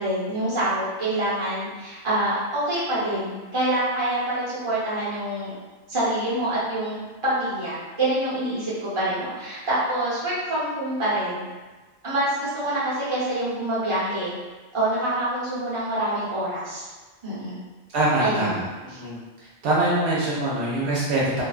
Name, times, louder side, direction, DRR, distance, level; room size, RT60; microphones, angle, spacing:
voice 1, 0.0-5.5 5.9-11.4 12.0-14.3 14.7-16.9 17.2-17.6 18.2-18.6 18.9-19.0, right 1 dB, 30° right, -10 dB, 0.8 m, -26 dB
voice 2, 17.9-18.6 19.0-19.2 19.6-21.4, right 1 dB, 75° right, -6 dB, 0.8 m, -23 dB
2.4 x 2.2 x 2.3 m, 1.3 s
omnidirectional pair, 1.2 m